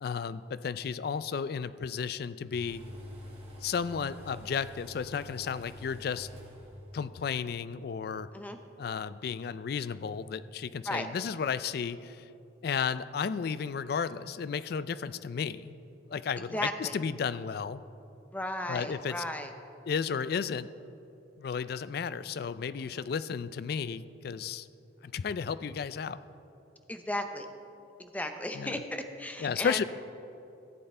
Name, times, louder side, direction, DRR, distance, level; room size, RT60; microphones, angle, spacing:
voice 1, 0.0-2.8 3.6-6.3 6.9-8.3 8.8-12.2 12.6-15.7 16.1-17.8 18.7-19.1 19.9-20.7 21.4-24.7 25.0-26.2 28.6-28.8 29.4-29.8, left 6 dB, 55° left, 15 dB, 0.3 m, -33 dB
sound 1, 2.5-7.0 7.2-7.3, equal, 35° right, 2.8 m, -47 dB
voice 2, 16.5-17.0 18.3-19.5 22.9-23.0 26.9-27.5 28.0-29.8, left 1 dB, 10° left, 6 dB, 0.6 m, -35 dB
14.5 x 8.0 x 4.3 m, 2.7 s
head